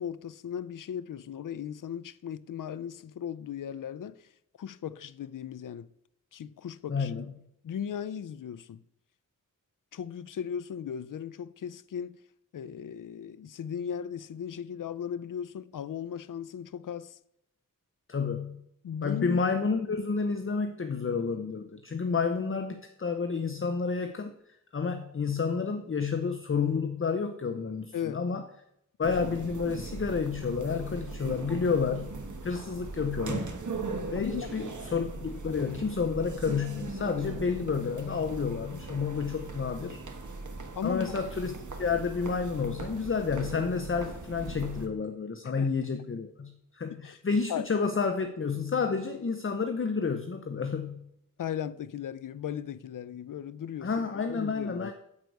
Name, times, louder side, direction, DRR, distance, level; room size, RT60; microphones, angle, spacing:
voice 1, 0.0-4.3 4.6-5.9 6.3-7.3 7.6-8.8 9.9-12.2 12.5-17.2 18.8-19.4 27.9-28.2 34.1-34.5 40.7-41.1 45.4-45.7 47.0-47.2 47.5-47.7 51.4-53.9 54.3-54.9, left 8 dB, 75° left, 0.5 m, -37 dB
voice 2, 6.9-7.2 18.1-18.6 19.0-24.3 24.7-28.4 29.0-33.5 34.1-40.0 40.8-51.1 53.8-54.9, left 5 dB, 40° left, 0.7 m, -30 dB
sound 1, 29.0-44.9, right 3 dB, 65° right, 1.3 m, -39 dB
9.6 x 4.7 x 7.8 m
wide cardioid pair, 80°, 32 cm